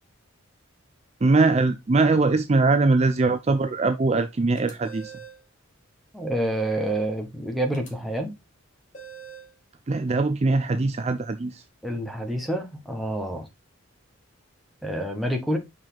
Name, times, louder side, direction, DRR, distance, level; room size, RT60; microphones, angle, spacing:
voice 1, 1.2-5.1 9.9-11.6, right 3 dB, 30° right, 0.4 m, -21 dB
sound 1, 4.5-5.4 7.7-7.9 8.9-9.5, right 6 dB, 40° left, 2.1 m, -43 dB
voice 2, 6.1-8.3 11.8-13.5 14.8-15.6, right 1 dB, ahead, 1.3 m, -28 dB
6.1 x 4.7 x 3.8 m
head